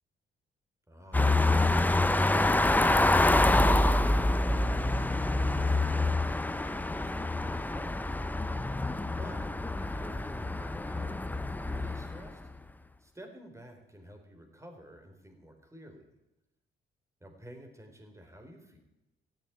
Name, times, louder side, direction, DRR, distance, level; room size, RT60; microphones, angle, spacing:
voice 1, 0.9-1.9 2.6-8.2 9.2-12.4 13.0-16.1 17.2-18.8, right 1 dB, 15° right, 4 dB, 4.0 m, -50 dB
sound 1, 1.1-12.5, left 2 dB, 10° left, 0.7 m, -26 dB
15.0 x 8.7 x 9.3 m, 0.93 s
cardioid pair, 90°, 20 cm